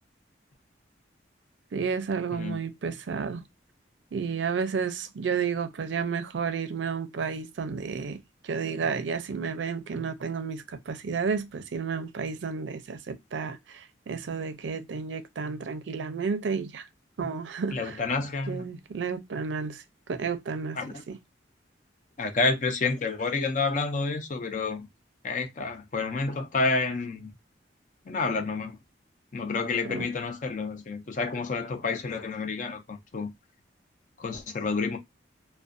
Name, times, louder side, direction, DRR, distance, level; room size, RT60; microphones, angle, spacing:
voice 1, 1.7-3.4 4.1-16.8 17.2-18.0 18.5-19.8 20.1-20.8 21.1-21.2 29.9-30.1, right 5 dB, 75° right, 0.4 m, -31 dB
voice 2, 17.7-18.7 20.8-21.0 22.2-24.9 25.2-27.3 28.1-28.8 29.3-33.3 34.2-35.0, left 3 dB, 40° left, 0.4 m, -29 dB
2.3 x 2.1 x 2.5 m
head